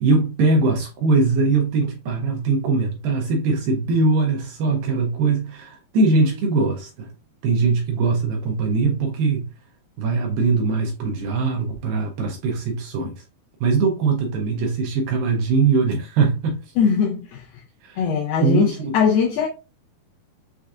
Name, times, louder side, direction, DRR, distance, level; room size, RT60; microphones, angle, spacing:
voice 1, 0.0-7.1 7.4-9.5 10.0-13.2 13.6-16.7 17.8-18.0 18.4-18.9, right 4 dB, 75° right, 2.2 m, -21 dB
voice 2, 16.8-17.4 18.0-19.5, left 6 dB, 80° left, 2.0 m, -20 dB
6.4 x 2.4 x 2.4 m
omnidirectional pair, 4.6 m